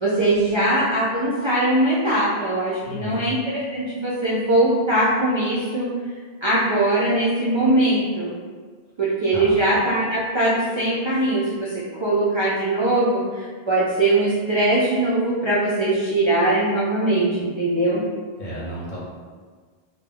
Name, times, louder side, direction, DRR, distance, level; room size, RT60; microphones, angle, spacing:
voice 1, 0.0-5.9 6.4-8.3 9.0-18.0, right 1 dB, 50° right, -8 dB, 0.3 m, -21 dB
voice 2, 2.8-3.3 9.3-9.6 18.4-19.0, equal, 50° left, -7 dB, 0.8 m, -32 dB
2.2 x 2.1 x 3.4 m, 1.5 s
omnidirectional pair, 1.1 m